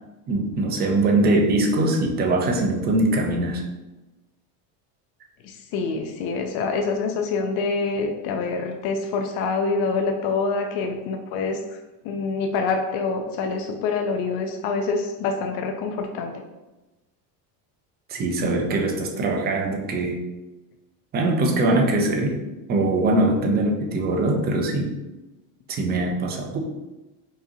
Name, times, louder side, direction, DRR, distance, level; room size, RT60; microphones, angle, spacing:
voice 1, 0.3-3.6 18.1-20.2 21.1-22.4 22.7-24.9 25.7-26.7, right 2 dB, 25° right, 2 dB, 0.3 m, -22 dB
voice 2, 5.4-11.8 12.0-16.4, left 4 dB, 55° left, 3 dB, 0.5 m, -26 dB
4.7 x 2.8 x 2.7 m, 1.1 s
cardioid pair, 145°, 47 cm